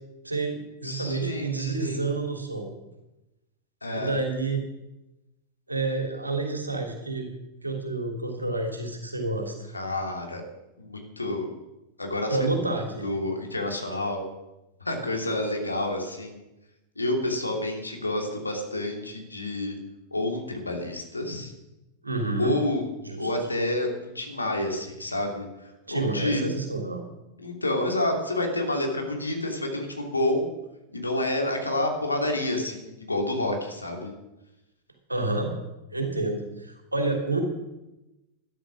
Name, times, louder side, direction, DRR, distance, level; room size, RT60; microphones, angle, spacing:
voice 1, 0.2-2.7 3.9-4.6 5.7-7.3 7.6-9.5 12.3-13.1 22.0-22.6 23.0-23.3 25.9-27.0 35.1-35.5 35.9-37.4, right 3 dB, 85° right, 3 dB, 2.9 m, -29 dB
voice 2, 0.8-2.0 3.8-4.1 9.7-10.4 10.8-11.5 12.0-12.5 13.0-14.2 14.8-16.4 17.0-19.8 20.1-21.5 22.4-22.9 23.2-26.4 27.4-30.5 30.9-34.1, left 1 dB, 80° left, 2 dB, 2.7 m, -29 dB
13.0 x 11.0 x 6.2 m, 0.97 s
figure-of-eight pair, 90°, 0 cm